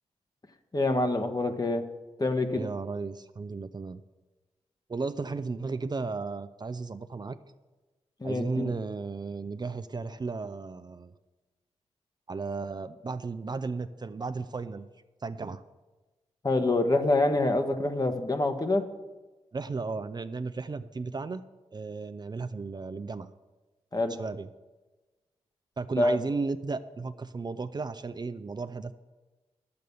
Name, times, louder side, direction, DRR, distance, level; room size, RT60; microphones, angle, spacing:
voice 1, 0.7-1.8 2.2-2.6 8.2-8.7 16.4-18.9 23.9-24.1 26.0-26.2, left 2 dB, 30° left, 6 dB, 1.3 m, -26 dB
voice 2, 2.5-4.0 4.9-7.4 8.2-11.1 12.3-14.9 15.2-15.6 19.5-21.4 21.7-23.3 24.2-24.5 25.8-28.9, right 4 dB, 35° right, 10 dB, 0.5 m, -34 dB
10.5 x 7.8 x 6.9 m, 1.2 s
cardioid pair, 55°, 12 cm